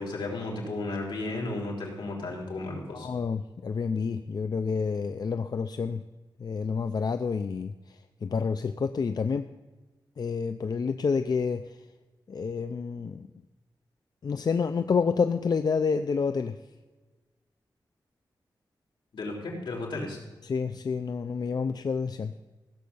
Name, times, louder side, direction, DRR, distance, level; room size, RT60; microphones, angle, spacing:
voice 1, 0.0-3.1 19.1-20.2, left 2 dB, 85° left, -1 dB, 3.6 m, -34 dB
voice 2, 2.9-6.0 6.4-7.7 8.2-9.5 10.2-11.6 12.3-13.3 14.2-16.6 20.4-22.3, left 5 dB, 60° left, 9 dB, 0.5 m, -28 dB
16.0 x 7.5 x 7.0 m, 1.2 s
wide cardioid pair, 95°, 8 cm